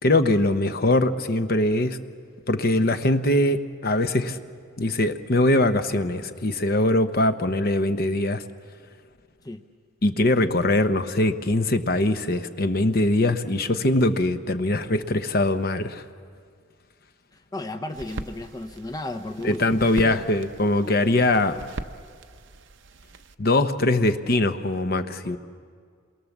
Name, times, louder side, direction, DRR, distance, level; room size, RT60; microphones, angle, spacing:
voice 1, 0.0-2.0 2.5-4.4 4.8-8.4 10.0-16.0 19.4-21.6 23.4-25.4, left 1 dB, 45° left, 9 dB, 0.9 m, -22 dB
voice 2, 17.3-20.2, left 2 dB, 20° left, 5 dB, 0.7 m, -34 dB
sound 1, 17.9-23.3, right 2 dB, 60° right, 0.7 m, -40 dB
28.5 x 22.5 x 7.3 m, 2.1 s
head